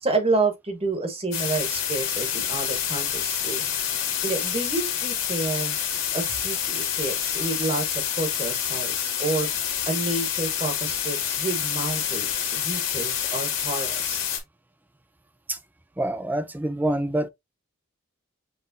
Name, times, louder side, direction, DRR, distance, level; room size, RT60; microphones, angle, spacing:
voice 1, 0.0-3.7 4.2-5.8 6.1-9.5 9.8-14.2, right 3 dB, 25° right, 1.1 m, -29 dB
sound 1, 1.3-14.4, left 9 dB, 65° left, 1.8 m, -27 dB
voice 2, 16.0-17.3, right 1 dB, 10° right, 0.3 m, -26 dB
5.7 x 3.3 x 2.7 m
head